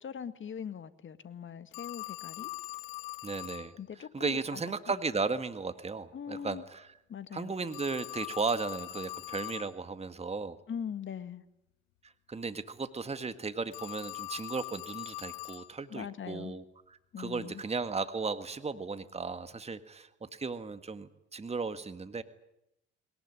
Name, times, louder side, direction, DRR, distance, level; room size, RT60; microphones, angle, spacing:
voice 1, 0.0-2.5 3.8-4.6 6.1-6.6 7.1-7.5 10.7-11.4 15.9-16.5 17.1-17.6, left 8 dB, 40° left, 12 dB, 1.8 m, -41 dB
Telephone, 1.7-3.7 7.7-9.7 13.7-15.7, left 20 dB, 70° left, 1.3 m, -42 dB
voice 2, 3.2-7.0 7.3-10.6 12.3-16.6 17.2-22.2, right 4 dB, 20° right, 10 dB, 1.8 m, -35 dB
22.5 x 19.5 x 9.9 m, 0.85 s
hypercardioid pair, 60°, 30 cm